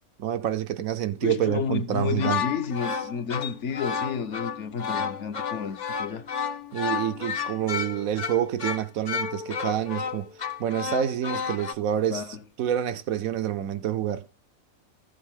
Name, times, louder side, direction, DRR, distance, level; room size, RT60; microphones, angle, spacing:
voice 1, 0.2-2.4 6.7-10.3 10.6-12.2 12.6-14.2, right 10 dB, 75° right, 1.1 m, -27 dB
voice 2, 1.2-6.2 12.1-12.4, left 6 dB, 60° left, 1.2 m, -31 dB
sound 1, 2.1-11.7, left 6 dB, 40° left, 0.8 m, -32 dB
14.5 x 7.2 x 3.7 m
omnidirectional pair, 1.5 m